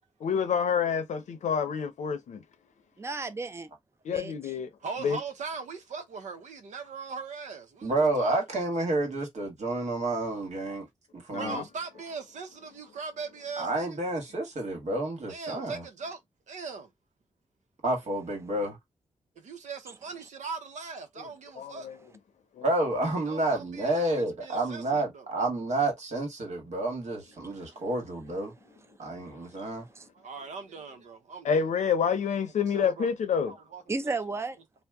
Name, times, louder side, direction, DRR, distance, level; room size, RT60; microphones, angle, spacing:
voice 1, 0.2-2.4 4.0-4.7 5.0-5.2 11.3-11.6 21.2-21.3 21.6-22.0 22.5-22.7 23.0-23.1 31.4-33.5, left 7 dB, 85° left, 0.7 m, -28 dB
voice 2, 3.0-3.7 4.1-4.3 27.6-27.7 29.1-29.3 29.6-30.1 33.9-34.6, right 3 dB, 20° right, 0.5 m, -34 dB
voice 3, 4.8-8.3 11.3-14.0 15.3-16.2 16.5-16.9 19.4-21.9 23.2-24.0 24.4-25.2 27.7-27.9 30.1-31.6 32.6-33.1 33.3-33.8, right 5 dB, 90° right, 0.7 m, -40 dB
voice 4, 7.8-10.8 11.3-11.6 13.6-15.8 17.8-18.8 22.6-28.5 29.0-29.8, right 2 dB, 70° right, 1.4 m, -29 dB
2.8 x 2.1 x 3.4 m
cardioid pair, 65°, 12 cm